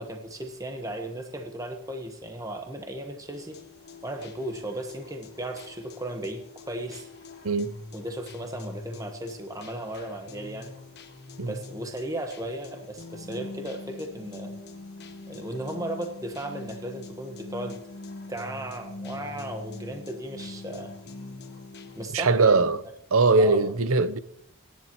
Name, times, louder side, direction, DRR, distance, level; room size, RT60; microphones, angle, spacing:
voice 1, 0.0-3.6 4.0-7.1 7.9-10.7 11.4-14.5 15.3-17.8 18.3-20.9 21.9-22.7 23.4-23.7, right 1 dB, 15° right, 1.2 m, -36 dB
sound 1, 3.3-22.1, left 2 dB, 50° left, 1.4 m, -43 dB
voice 2, 22.1-22.8 23.1-24.2, right 3 dB, 70° right, 0.8 m, -21 dB
28.0 x 10.5 x 3.1 m
head